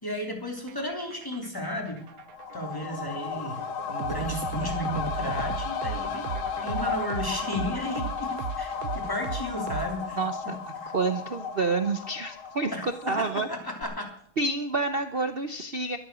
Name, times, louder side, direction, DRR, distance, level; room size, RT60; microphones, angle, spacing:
voice 1, 0.0-2.0 2.5-6.3 6.6-10.2 10.7-10.9 12.7-14.1, left 1 dB, 10° left, 2 dB, 3.1 m, -34 dB
sound 1, 0.6-10.3, right 8 dB, 60° right, 1.0 m, -37 dB
sound 2, 2.0-13.5 13.8-13.9, left 6 dB, 80° left, 2.0 m, -34 dB
voice 2, 10.2-10.6 10.9-13.5 14.4-16.0, right 3 dB, 85° right, 8 dB, 0.5 m, -28 dB
13.0 x 12.5 x 6.2 m, 0.64 s
omnidirectional pair, 2.3 m